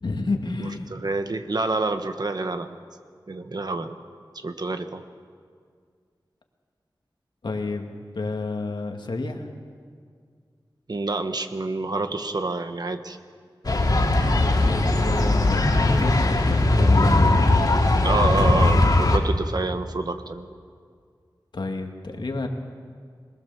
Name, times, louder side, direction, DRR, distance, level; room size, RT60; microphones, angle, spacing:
voice 1, 0.0-0.9 7.4-9.5 14.6-17.6 21.5-22.5, left 3 dB, 70° left, 3 dB, 2.1 m, -30 dB
voice 2, 0.6-2.7 3.3-4.0 4.3-5.0 10.9-13.2 18.0-20.5, right 3 dB, 55° right, 8 dB, 1.3 m, -27 dB
sound 1, 13.6-19.2, left 2 dB, 55° left, 2.6 m, -19 dB
22.5 x 20.5 x 7.1 m, 2.1 s
wide cardioid pair, 70°, 8 cm